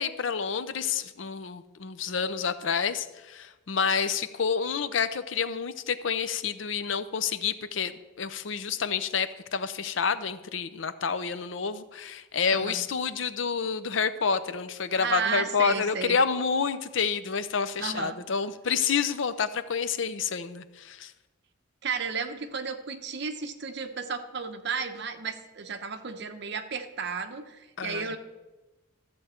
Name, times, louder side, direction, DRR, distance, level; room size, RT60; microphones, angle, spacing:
voice 1, 0.0-21.1 27.8-28.2, left 6 dB, 70° left, 13 dB, 0.6 m, -29 dB
voice 2, 15.0-16.2 17.8-18.2 21.8-28.2, right 5 dB, 60° right, 8 dB, 0.9 m, -33 dB
13.5 x 7.8 x 4.4 m, 1.1 s
head